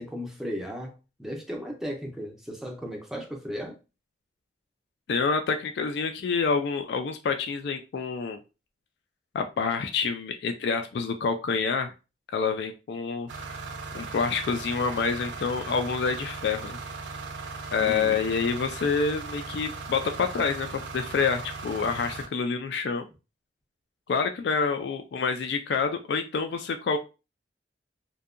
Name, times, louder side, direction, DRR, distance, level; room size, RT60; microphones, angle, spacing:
voice 1, 0.0-3.8 17.8-18.2, equal, ahead, 0.5 m, -36 dB
voice 2, 5.1-8.4 9.3-11.9 12.3-13.5 13.9-16.8 17.7-23.1 24.1-27.0, left 5 dB, 65° left, 0.3 m, -27 dB
sound 1, 13.3-22.3, right 4 dB, 85° right, 0.5 m, -38 dB
2.7 x 2.2 x 2.4 m
head